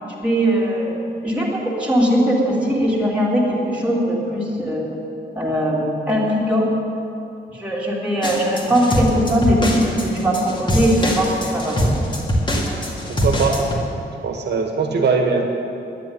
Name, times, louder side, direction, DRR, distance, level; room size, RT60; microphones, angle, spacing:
voice 1, 0.2-1.0 1.2-4.9 5.4-6.6 7.5-11.9, equal, 5° right, -5 dB, 2.4 m, -20 dB
sound 1, 8.2-13.7, equal, 25° left, 2.0 m, -22 dB
voice 2, 13.1-13.6 14.2-15.4, right 5 dB, 70° right, 3 dB, 1.8 m, -20 dB
11.0 x 10.0 x 9.3 m, 2.7 s
wide cardioid pair, 170°, 18 cm